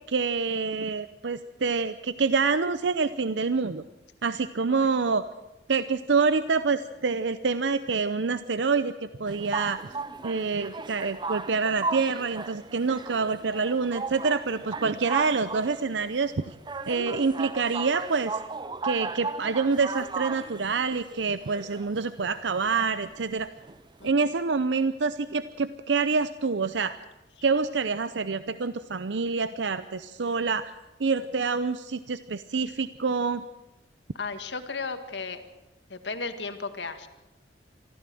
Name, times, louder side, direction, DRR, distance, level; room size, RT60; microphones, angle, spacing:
voice 1, 0.1-3.8 4.2-5.3 5.7-9.9 10.2-16.5 16.9-18.4 18.8-23.5 24.0-27.0 27.4-30.7 31.0-33.4, right 4 dB, 90° right, 13 dB, 0.7 m, -27 dB
sound 1, 9.3-24.1, right 4 dB, 25° right, 0.6 m, -36 dB
voice 2, 16.9-17.3 24.0-24.1 34.2-35.4 35.9-37.1, left 4 dB, 80° left, 8 dB, 1.9 m, -35 dB
24.5 x 14.5 x 7.7 m, 1.0 s
head